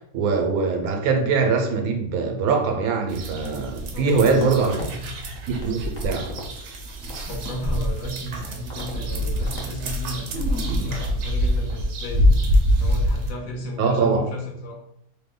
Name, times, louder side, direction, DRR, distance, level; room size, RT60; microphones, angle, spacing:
voice 1, 0.1-4.7 5.5-6.3 13.8-14.3, right 4 dB, 90° right, 4 dB, 1.1 m, -22 dB
sound 1, 3.1-13.3, equal, 65° right, 0.8 m, -25 dB
voice 2, 3.9-5.1 7.2-12.3 12.8-14.8, left 1 dB, 75° left, 0 dB, 1.1 m, -34 dB
sound 2, 4.4-4.9 5.3-6.5 6.8-8.3 8.7-8.9 9.2-9.7 10.0-10.1 10.5-11.1 11.4-11.8 12.1-12.4, equal, 45° left, 0.6 m, -34 dB
2.9 x 2.2 x 3.6 m, 0.75 s
omnidirectional pair, 1.5 m